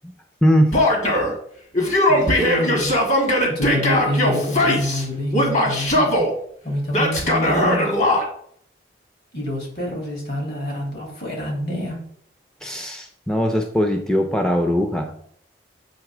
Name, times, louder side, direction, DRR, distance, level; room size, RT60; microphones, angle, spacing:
voice 1, 0.4-0.8 12.6-15.3, equal, 5° left, 4 dB, 0.5 m, -20 dB
Male speech man speaking / Yell, 0.7-1.3 1.7-5.0 5.3-6.3 6.9-8.2, left 1 dB, 40° left, 1.6 m, -19 dB
voice 2, 2.1-6.1 6.6-7.9 9.3-12.0, left 1 dB, 60° left, -1 dB, 2.8 m, -27 dB
7.6 x 3.3 x 6.0 m, 0.65 s
head